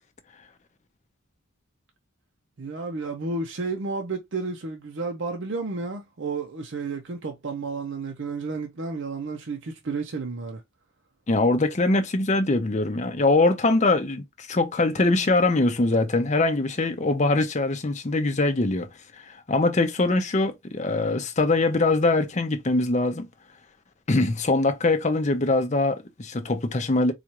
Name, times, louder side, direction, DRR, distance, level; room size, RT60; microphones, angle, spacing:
voice 1, 2.6-10.6, right 3 dB, 55° right, 0.6 m, -31 dB
voice 2, 11.3-18.9 19.1-23.3 24.1-27.1, left 2 dB, 30° left, 0.6 m, -23 dB
4.2 x 2.4 x 2.9 m
head